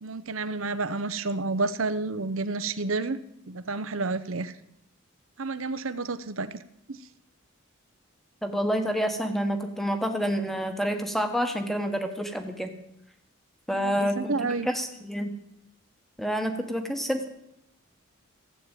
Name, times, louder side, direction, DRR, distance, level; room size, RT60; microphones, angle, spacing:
voice 1, 0.0-3.2 3.5-4.5 5.4-6.6 6.9-7.0 13.7-14.7, right 3 dB, 70° right, 13 dB, 0.9 m, -30 dB
voice 2, 8.4-12.7 13.7-15.3 16.2-17.3, equal, ahead, 6 dB, 1.3 m, -28 dB
14.5 x 8.6 x 9.1 m, 0.79 s
head